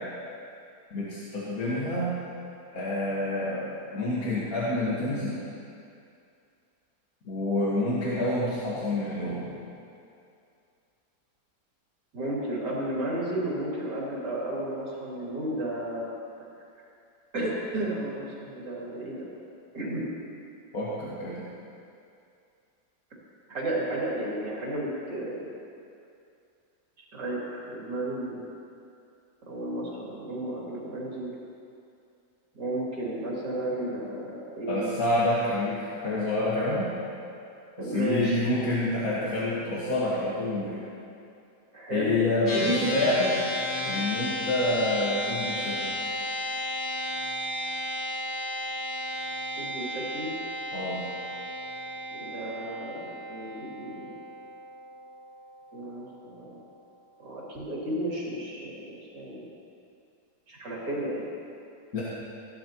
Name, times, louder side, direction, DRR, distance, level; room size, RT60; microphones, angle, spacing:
voice 1, 0.9-2.2 2.7-5.4 7.2-9.5 20.7-21.5 34.7-36.9 37.8-40.8 41.9-42.6 42.9-43.4 43.8-46.1 50.7-51.0 61.9-62.0, left 1 dB, 60° left, -8 dB, 2.0 m, -28 dB
voice 2, 12.1-16.1 17.3-19.3 19.7-20.1 23.5-25.5 27.1-28.4 29.5-31.3 32.5-35.0 37.8-38.8 41.7-42.1 42.5-42.9 49.6-50.3 52.1-54.1 55.7-56.6 57.2-59.5 60.5-61.3, right 1 dB, 75° right, -6 dB, 3.4 m, -33 dB
sound 1, 42.5-56.0, equal, 80° left, 2.4 m, -34 dB
17.0 x 12.0 x 3.0 m, 2.5 s
omnidirectional pair, 1.8 m